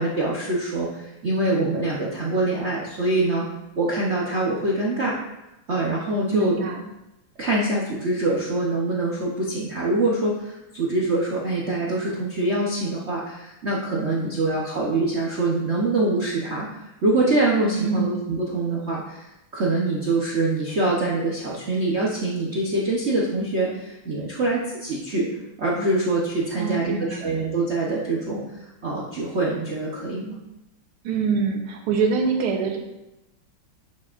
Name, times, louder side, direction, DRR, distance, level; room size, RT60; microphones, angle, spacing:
voice 1, 0.0-3.5 3.8-5.1 5.7-6.6 7.4-25.3 25.6-30.4, right 2 dB, 50° right, -5 dB, 0.8 m, -24 dB
voice 2, 6.3-6.8 17.7-18.2 26.6-27.3 31.0-32.8, right 5 dB, 80° right, 2 dB, 1.8 m, -25 dB
9.6 x 6.4 x 2.5 m, 0.94 s
omnidirectional pair, 2.4 m